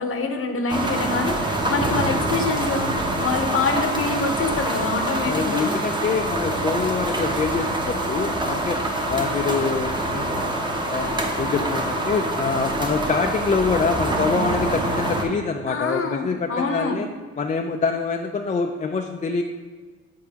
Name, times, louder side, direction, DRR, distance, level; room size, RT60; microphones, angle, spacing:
voice 1, 0.0-2.9 3.2-5.7 15.7-17.0, left 4 dB, 45° left, 5 dB, 0.8 m, -25 dB
sound 1, 0.7-15.3, right 1 dB, 15° right, 0.8 m, -25 dB
voice 2, 5.2-8.8 9.1-10.5 10.9-17.1 17.4-19.4, left 4 dB, 25° left, 3 dB, 0.3 m, -25 dB
7.1 x 4.6 x 2.9 m, 1.4 s
cardioid pair, 90°, 30 cm